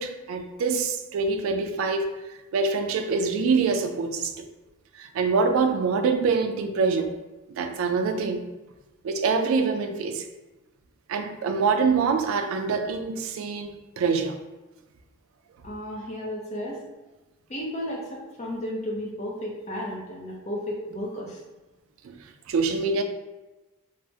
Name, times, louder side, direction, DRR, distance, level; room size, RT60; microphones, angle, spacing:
voice 1, 0.0-2.1 2.5-4.4 5.0-7.1 7.6-8.4 9.0-10.2 11.1-14.4 22.0-22.1 22.5-23.0, right 4 dB, 75° right, 5 dB, 0.3 m, -25 dB
voice 2, 15.6-16.9 17.5-21.4, equal, 30° left, -2 dB, 0.5 m, -33 dB
3.3 x 2.0 x 2.7 m, 1.1 s
head